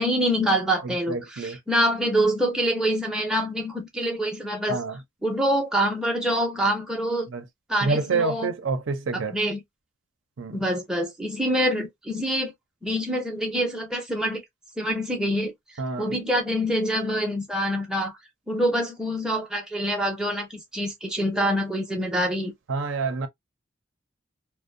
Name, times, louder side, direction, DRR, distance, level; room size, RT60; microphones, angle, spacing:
voice 1, 0.0-4.8 5.2-7.3 7.7-8.5 9.3-9.6 10.5-12.5 12.8-14.4 14.8-15.5 16.0-18.1 18.5-20.5 20.7-22.5, equal, 5° right, 0.5 m, -25 dB
voice 2, 0.8-1.6 4.7-5.0 7.3-7.4 7.8-9.4 10.4-10.6 15.8-16.1 22.7-23.3, right 4 dB, 75° right, 0.5 m, -27 dB
2.5 x 2.1 x 2.5 m
head